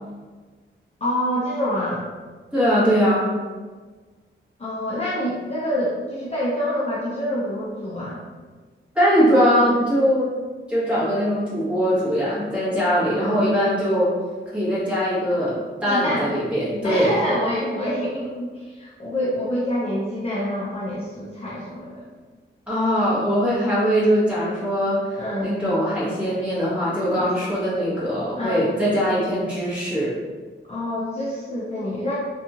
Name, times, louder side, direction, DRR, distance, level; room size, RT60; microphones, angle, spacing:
voice 1, 1.0-2.1 4.6-8.2 13.1-13.5 15.9-16.3 16.8-22.0 25.1-25.5 27.2-27.6 28.4-28.7 30.7-32.2, equal, 30° left, -8 dB, 0.5 m, -27 dB
voice 2, 2.5-3.3 8.9-10.3 10.7-14.1 14.5-17.2 22.7-30.1, equal, 5° right, -11 dB, 1.2 m, -21 dB
2.7 x 2.3 x 2.7 m, 1.4 s
wide cardioid pair, 140°, 21 cm